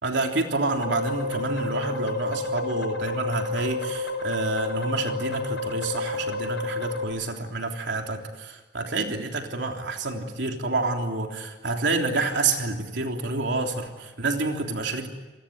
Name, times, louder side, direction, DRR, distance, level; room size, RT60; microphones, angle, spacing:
voice 1, 0.0-15.1, right 3 dB, 80° right, 3 dB, 3.4 m, -28 dB
sound 1, 0.8-7.0, left 3 dB, 75° left, 6.2 m, -30 dB
27.5 x 20.5 x 9.3 m, 1.2 s
head